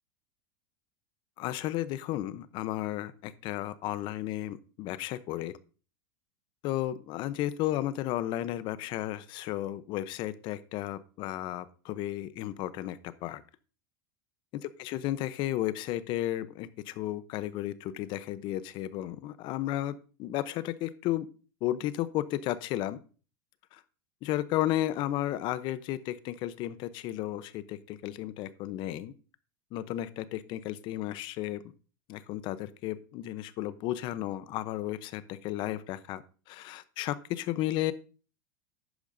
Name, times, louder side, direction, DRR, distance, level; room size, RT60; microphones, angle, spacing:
voice 1, 1.4-5.5 6.6-13.4 14.8-21.3 21.6-23.0 24.2-29.1 29.7-31.6 32.1-36.2 36.5-37.9, left 14 dB, 45° left, 14 dB, 0.8 m, -33 dB
11.0 x 8.4 x 2.7 m, 0.37 s
supercardioid pair, 125°, 11 cm